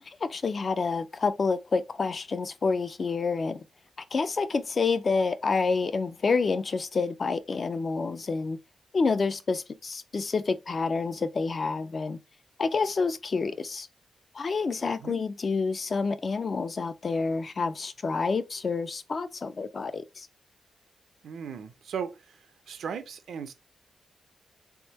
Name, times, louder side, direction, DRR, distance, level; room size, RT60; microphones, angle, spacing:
voice 1, 0.0-3.6 4.1-8.6 8.9-12.2 12.6-13.9 14.3-20.3, left 4 dB, 40° left, 0.4 m, -28 dB
voice 2, 21.2-23.5, right 7 dB, 80° right, 0.6 m, -37 dB
3.5 x 3.5 x 2.9 m
wide cardioid pair, 150°, 0 cm